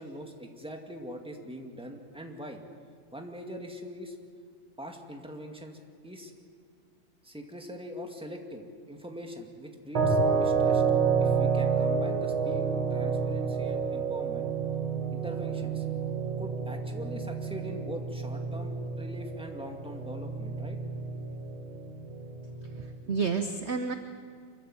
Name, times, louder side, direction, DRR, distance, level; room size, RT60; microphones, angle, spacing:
voice 1, 0.0-2.6 3.1-4.2 4.8-6.3 7.2-10.8 11.2-14.5 15.1-15.9 16.4-20.8, equal, 5° right, 3 dB, 2.0 m, -42 dB
sound 1, 10.0-22.9, right 5 dB, 85° right, 3.0 m, -29 dB
voice 2, 22.7-23.9, right 5 dB, 45° right, 7 dB, 1.0 m, -30 dB
25.5 x 15.0 x 9.7 m, 2.3 s
omnidirectional pair, 2.2 m